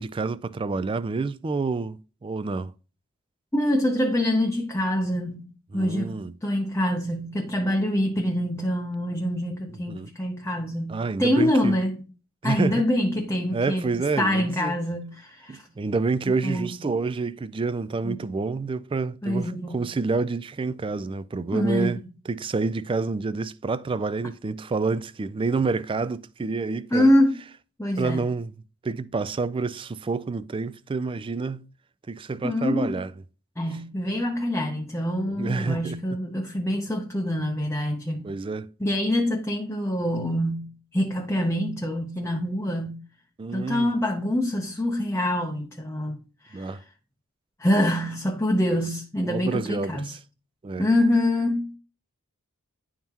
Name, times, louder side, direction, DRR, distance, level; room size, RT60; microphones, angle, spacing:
voice 1, 0.0-2.7 5.7-6.3 9.9-10.1 10.9-11.8 12.4-12.9 13.5-14.7 15.5-27.1 28.0-28.5 28.8-31.7 32.1-33.1 35.4-36.2 38.2-38.7 43.4-43.9 46.5-46.8 49.3-50.2 50.6-50.9, right 4 dB, 25° right, 0.3 m, -28 dB
voice 2, 3.5-12.1 12.4-15.6 16.4-16.9 18.0-18.2 19.2-19.8 21.5-22.0 26.9-27.4 27.8-28.3 32.4-33.0 33.6-38.3 38.8-43.0 43.5-46.7 47.6-50.1 50.8-51.7, left 1 dB, 10° left, 0.7 m, -25 dB
11.0 x 3.6 x 2.9 m
head